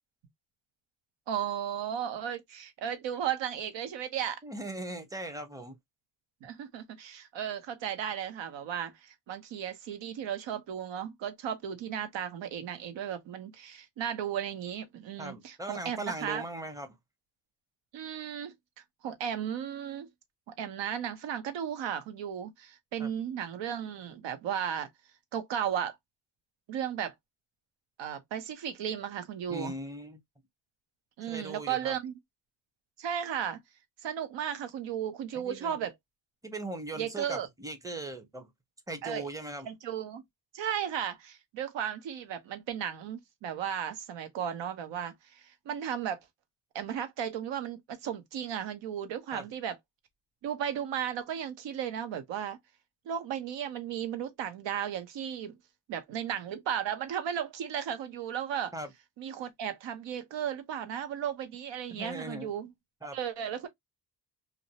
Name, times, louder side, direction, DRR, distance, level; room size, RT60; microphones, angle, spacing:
voice 1, 1.3-4.4 6.4-16.4 17.9-18.5 19.0-20.1 20.5-24.9 25.3-26.0 26.7-27.1 28.0-29.7 31.2-32.1 33.0-33.6 34.0-35.9 36.9-37.5 39.0-39.2 39.6-40.2 40.5-46.2 46.7-49.8 50.4-52.6 53.1-55.6 55.9-58.7 59.2-62.7 63.1-63.7, right 9 dB, 80° right, 0.8 m, -35 dB
voice 2, 4.4-5.8 15.2-17.0 23.0-23.1 29.5-30.2 31.3-32.0 35.3-35.9 36.4-38.5 38.9-39.7 49.3-49.5 58.7-58.9 61.9-62.5 63.0-63.2, right 2 dB, 10° right, 0.7 m, -39 dB
2.6 x 2.0 x 2.8 m
cardioid pair, 100°, 44 cm